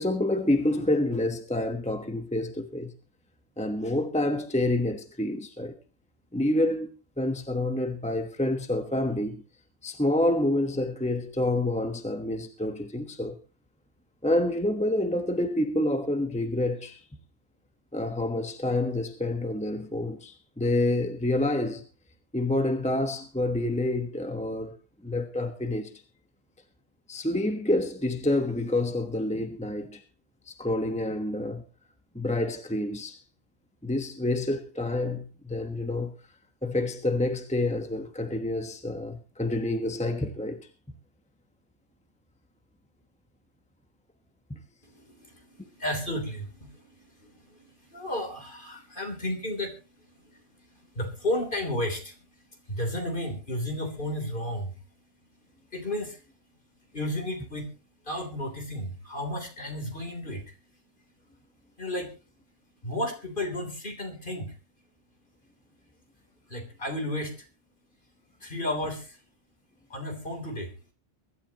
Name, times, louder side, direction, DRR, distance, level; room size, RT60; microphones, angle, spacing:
voice 1, 0.0-2.9 3.6-5.8 6.3-6.9 7.2-9.4 9.8-13.4 14.2-17.0 17.9-21.8 22.3-24.8 25.0-26.0 27.1-30.0 30.5-31.6 32.1-33.2 33.8-36.1 36.6-40.6, left 1 dB, 5° left, 1.1 m, -28 dB
voice 2, 44.8-61.1 61.8-62.2 62.8-64.6 66.5-67.5 68.4-69.2 69.9-70.8, left 1 dB, 45° left, 3.5 m, -34 dB
23.5 x 12.0 x 2.9 m
omnidirectional pair, 1.2 m